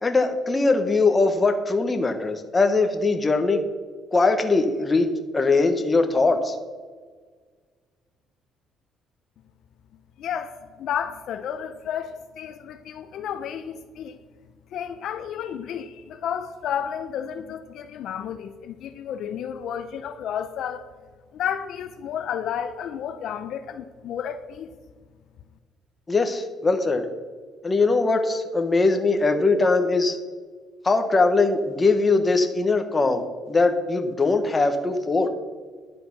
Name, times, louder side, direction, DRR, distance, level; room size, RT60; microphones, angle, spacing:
voice 1, 0.0-3.6 4.1-5.1 5.3-6.6 26.1-27.0 27.6-30.2 30.8-35.3, left 3 dB, 20° left, 1.1 m, -21 dB
voice 2, 10.2-14.2 14.7-20.9 21.3-24.7, left 8 dB, 65° left, 0.6 m, -32 dB
11.0 x 7.6 x 6.0 m
cardioid pair, 125°, 0 cm